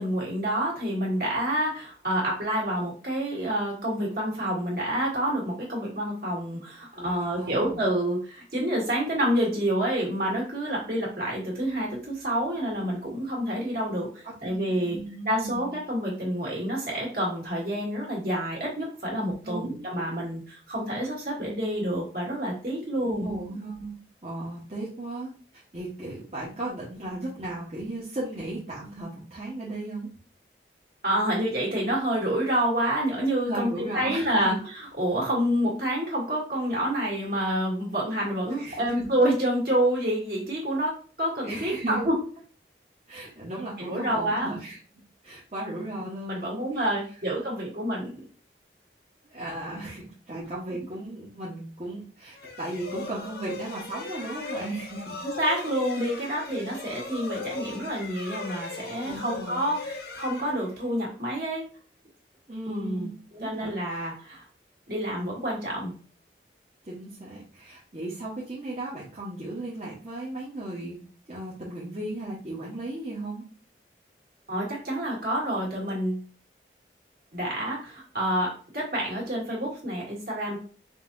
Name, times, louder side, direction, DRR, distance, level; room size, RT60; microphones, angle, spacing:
voice 1, 0.0-15.0 15.3-23.3 31.0-34.5 35.0-42.2 43.9-44.5 46.3-48.1 55.2-61.7 62.7-63.1 63.4-64.5 64.9-65.9 74.5-76.2 77.3-80.6, right 1 dB, 55° right, -4 dB, 1.9 m, -28 dB
voice 2, 6.9-7.8 14.2-15.7 19.4-19.8 23.0-30.1 33.4-34.6 38.6-39.1 41.4-42.0 43.1-44.8 45.2-46.9 49.3-55.2 59.0-59.6 62.5-64.0 66.8-71.0 71.3-73.4, right 2 dB, 35° right, -8 dB, 1.0 m, -36 dB
sound 1, 52.3-61.1, left 3 dB, 60° left, 0.6 m, -38 dB
5.4 x 2.8 x 2.6 m, 0.40 s
head